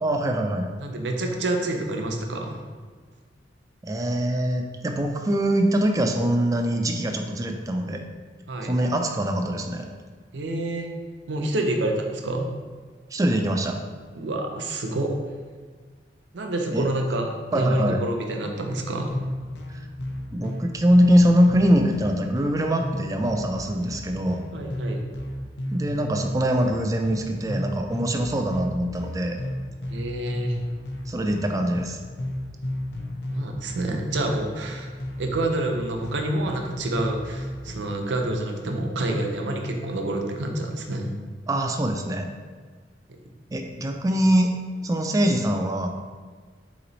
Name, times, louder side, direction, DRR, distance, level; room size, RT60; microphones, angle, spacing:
voice 1, 0.0-0.7 3.8-8.0 8.6-9.8 13.1-13.8 16.7-16.8 17.5-18.0 20.3-24.4 25.7-29.4 31.1-32.0 41.5-42.3 43.5-44.5 44.8-45.9, equal, 20° right, 3 dB, 0.3 m, -23 dB
voice 2, 0.8-2.6 8.5-8.7 10.3-10.9 11.3-12.5 14.1-15.2 16.3-19.2 24.5-25.0 29.9-30.6 33.3-34.9 35.2-41.1 43.1-43.2, right 1 dB, 80° right, 3 dB, 0.6 m, -27 dB
sound 1, 19.1-37.9, left 1 dB, 70° left, 0.6 m, -34 dB
4.0 x 3.0 x 3.9 m, 1.5 s
head